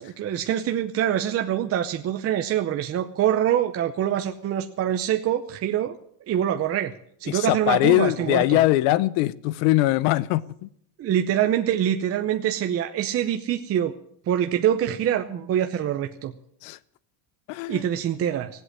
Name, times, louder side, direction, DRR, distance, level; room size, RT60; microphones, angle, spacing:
voice 1, 0.0-5.9 6.3-6.9 7.2-8.6 11.0-13.9 14.3-16.3 17.7-18.5, right 10 dB, 30° right, 0.7 m, -25 dB
voice 2, 7.3-10.7 16.6-16.8 17.5-17.8, left 16 dB, 75° left, 0.9 m, -21 dB
16.5 x 8.2 x 9.8 m
cardioid pair, 155°, 45 cm